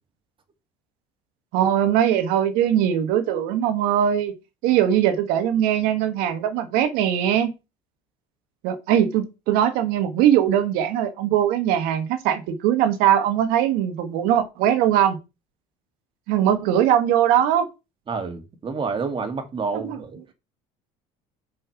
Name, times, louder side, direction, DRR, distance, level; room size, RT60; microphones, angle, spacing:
voice 1, 1.5-4.3 4.6-7.5 8.6-15.2 16.3-17.7 19.7-20.0, right 10 dB, 75° right, 1.6 m, -21 dB
voice 2, 18.1-20.1, right 4 dB, 35° right, 2.1 m, -28 dB
5.7 x 5.2 x 5.9 m
supercardioid pair, 90°, 15 cm